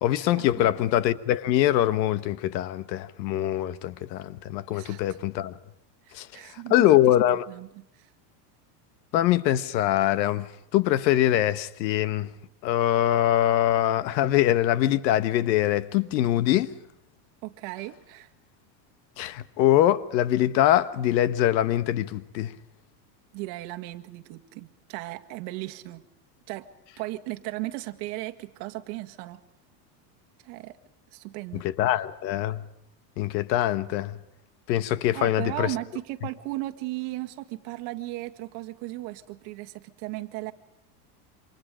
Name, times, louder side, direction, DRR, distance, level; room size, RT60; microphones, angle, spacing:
voice 1, 0.0-5.5 6.1-6.3 6.7-7.4 9.1-12.3 12.6-16.7 19.2-22.5 31.6-32.6 33.2-34.2 34.7-35.7, left 13 dB, 85° left, 1.5 m, -23 dB
voice 2, 4.7-5.2 6.0-8.1 17.4-18.3 23.3-26.0 26.5-26.7 27.0-29.4 30.4-30.8 31.1-32.0 35.1-40.5, right 18 dB, 55° right, 2.0 m, -36 dB
28.0 x 26.0 x 5.1 m
supercardioid pair, 150°, 50 cm